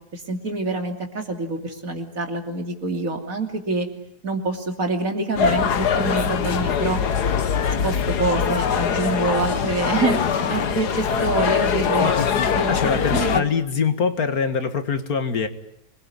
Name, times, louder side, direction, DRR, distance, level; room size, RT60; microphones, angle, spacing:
voice 1, 0.1-3.9 4.2-7.0 7.8-12.1 12.5-13.4, right 3 dB, 55° right, 4 dB, 3.3 m, -26 dB
sound 1, 5.4-13.4, left 7 dB, 85° left, 1.9 m, -22 dB
voice 2, 12.7-15.5, left 6 dB, 65° left, 9 dB, 2.1 m, -23 dB
26.0 x 21.0 x 9.8 m, 0.74 s
omnidirectional pair, 1.7 m